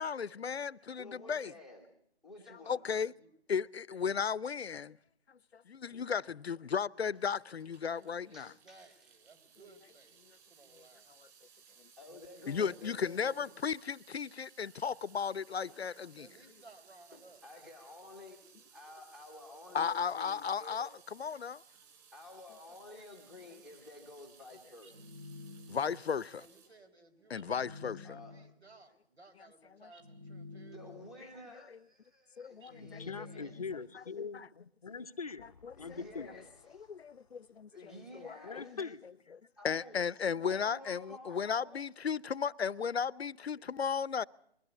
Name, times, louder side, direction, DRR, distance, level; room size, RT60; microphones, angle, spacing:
voice 1, 0.0-1.5 2.5-3.1 3.5-5.0 5.5-8.5 10.7-10.8 12.5-16.3 19.7-21.6 25.7-26.4 27.3-28.0 29.8-29.9 31.7-31.8 32.4-33.0 33.7-34.0 34.3-34.5 35.6-36.0 36.9-38.8 39.3-44.2, left 6 dB, 75° left, 0.7 m, -35 dB
voice 2, 1.0-1.9 2.2-3.0 8.1-9.1 12.0-13.5 15.7-15.8 17.1-18.4 18.7-20.9 22.1-25.0 28.0-28.4 30.5-33.5 35.8-36.5 36.7-36.9 37.7-38.8 39.6-40.0 40.4-41.8, left 2 dB, ahead, 1.1 m, -52 dB
Water tap faucet / Sink (filling or washing) / Drip, 7.1-26.7, right 7 dB, 15° right, 4.5 m, -62 dB
voice 3, 8.2-11.2 16.2-17.5 26.4-31.0, right 3 dB, 80° right, 4.9 m, -60 dB
sound 1, 24.8-26.2 27.3-28.7 29.9-31.3 32.6-34.0, left 3 dB, 55° right, 4.0 m, -50 dB
voice 4, 32.8-36.4 36.9-37.1 38.4-39.3, left 5 dB, 35° left, 0.7 m, -43 dB
22.0 x 15.0 x 8.2 m
figure-of-eight pair, 165°, 32 cm